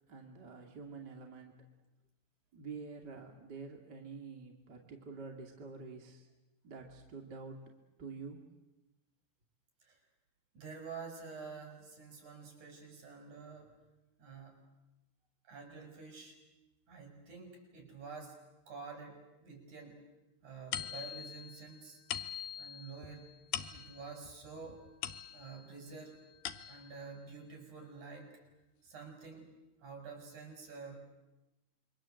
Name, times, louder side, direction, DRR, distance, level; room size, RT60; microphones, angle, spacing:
voice 1, 0.1-1.7 2.5-6.3 6.6-7.6 8.0-8.5, right 4 dB, 30° right, 1 dB, 2.7 m, -48 dB
voice 2, 10.5-13.7 14.2-14.7 15.4-16.4 16.9-18.4 18.7-20.0 20.4-22.0 22.6-23.3 23.7-24.8 25.3-26.2 26.7-28.4 28.8-29.5 29.8-31.2, right 5 dB, 55° right, 4 dB, 6.6 m, -49 dB
sound 1, 20.7-25.7 26.2-27.0, left 10 dB, 90° left, 3.0 m, -43 dB
27.5 x 23.5 x 7.8 m, 1.0 s
omnidirectional pair, 4.1 m